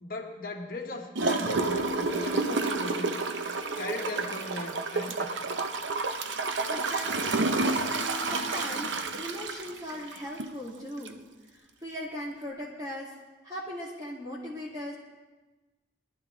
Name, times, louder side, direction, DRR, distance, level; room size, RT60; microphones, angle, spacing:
voice 1, 0.0-3.1 3.8-5.3, left 2 dB, 50° left, 1 dB, 1.6 m, -38 dB
Gurgling / Toilet flush, 1.2-10.6 11.1-11.2, right 3 dB, 85° right, 0.8 m, -30 dB
voice 2, 6.7-7.5 7.9-11.2 11.5-13.2 13.4-14.9, equal, 20° right, -6 dB, 2.3 m, -39 dB
22.0 x 11.5 x 3.2 m, 1.2 s
head